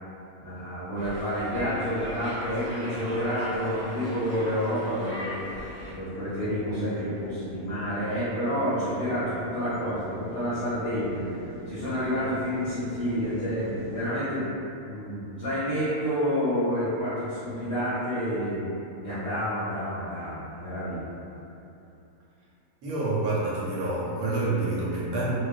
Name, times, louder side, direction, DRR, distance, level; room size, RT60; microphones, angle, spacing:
voice 1, 0.4-5.3 5.9-11.4 11.7-14.5 14.8-18.7 19.0-21.4, equal, 60° left, -12 dB, 0.7 m, -29 dB
sound 1, 1.0-5.9, equal, 60° right, 0.6 m, -39 dB
sound 2, 3.4-14.0, equal, 5° right, 0.4 m, -44 dB
voice 2, 22.8-25.3, right 2 dB, 85° right, -7 dB, 1.1 m, -27 dB
2.4 x 2.2 x 2.5 m, 2.7 s
omnidirectional pair, 1.5 m